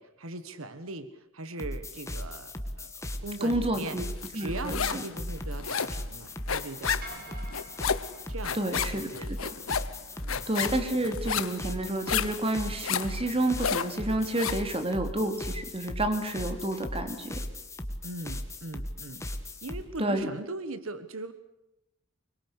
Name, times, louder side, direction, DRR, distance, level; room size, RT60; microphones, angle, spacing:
voice 1, 0.0-2.9 3.2-4.0 4.3-7.5 8.3-8.6 8.9-9.3 10.2-10.5 18.0-19.2 19.6-21.3, right 2 dB, 85° right, 12 dB, 1.5 m, -40 dB
sound 1, 1.6-19.8, left 1 dB, 15° left, 1.9 m, -38 dB
voice 2, 3.4-4.1 4.3-5.0 8.5-9.1 10.5-17.4 20.0-20.3, right 1 dB, 30° right, 7 dB, 3.0 m, -29 dB
sound 2, 4.2-5.1 5.4-14.7, left 7 dB, 85° left, 1.0 m, -32 dB
sound 3, 7.0-9.4, right 1 dB, 50° right, 4.9 m, -48 dB
24.5 x 22.5 x 8.2 m, 0.88 s
head